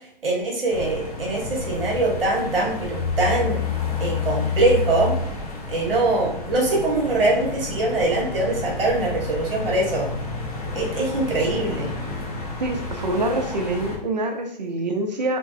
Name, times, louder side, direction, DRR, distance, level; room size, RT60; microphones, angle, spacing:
voice 1, 0.2-3.6 4.0-5.1 5.7-10.1 10.7-11.9, right 2 dB, 70° right, -3 dB, 1.2 m, -23 dB
sound 1, 0.7-14.0, left 4 dB, 40° left, 0.8 m, -30 dB
voice 2, 12.6-15.4, right 2 dB, 45° right, 4 dB, 0.6 m, -25 dB
4.5 x 2.0 x 2.6 m, 0.69 s
hypercardioid pair, 175°, 29 cm